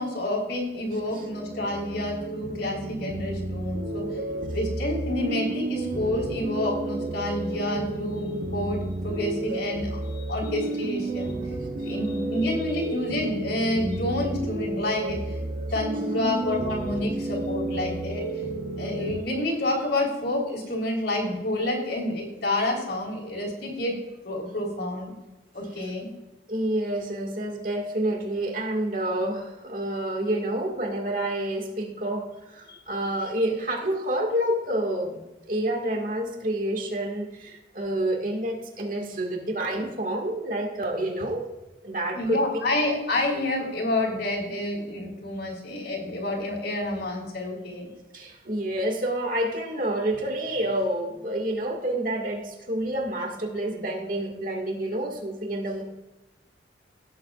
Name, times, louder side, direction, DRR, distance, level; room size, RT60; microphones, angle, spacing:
voice 1, 0.0-4.2 4.5-11.5 11.8-15.4 15.7-18.4 18.8-24.0 24.2-25.1 25.5-26.1 42.1-47.9, left 1 dB, 65° left, -3 dB, 3.9 m, -29 dB
sound 1, 0.8-19.2, right 2 dB, 75° right, 1.2 m, -32 dB
voice 2, 26.5-35.2 35.5-41.5 41.8-42.4 48.1-55.8, right 1 dB, 45° right, 2 dB, 1.9 m, -28 dB
17.5 x 8.0 x 2.4 m, 1.1 s
head